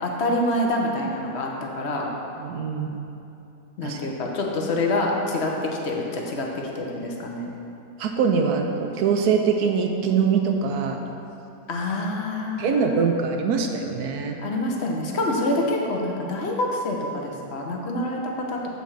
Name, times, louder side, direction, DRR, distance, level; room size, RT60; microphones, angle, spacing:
voice 1, 0.0-1.5 1.7-2.1 3.8-7.5 11.7-13.1 14.4-18.6, left 1 dB, 50° left, 0 dB, 1.1 m, -26 dB
voice 2, 2.4-3.0 3.8-4.0 8.0-11.0 12.6-14.4, right 6 dB, 80° right, 3 dB, 1.1 m, -23 dB
8.2 x 4.3 x 6.4 m, 2.8 s
omnidirectional pair, 1.6 m